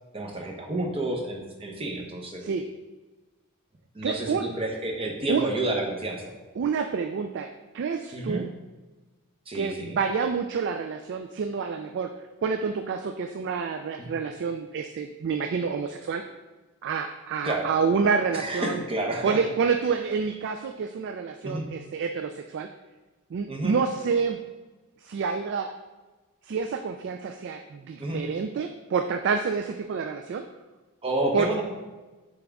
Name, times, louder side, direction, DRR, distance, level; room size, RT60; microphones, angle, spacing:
voice 1, 0.1-2.5 3.9-6.2 8.1-8.4 9.5-10.0 14.0-14.1 17.4-17.7 18.3-19.4 21.4-21.6 23.5-23.7 28.0-28.2 31.0-31.7, right 2 dB, 25° right, 1 dB, 0.9 m, -30 dB
voice 2, 4.0-4.5 5.3-5.5 6.6-7.5 7.7-8.5 9.5-12.1 12.4-16.2 16.8-18.8 19.2-22.7 23.3-24.4 25.0-25.7 26.4-30.4 31.3-31.5, right 5 dB, 55° right, 6 dB, 0.3 m, -28 dB
7.7 x 3.4 x 3.5 m, 1.2 s
head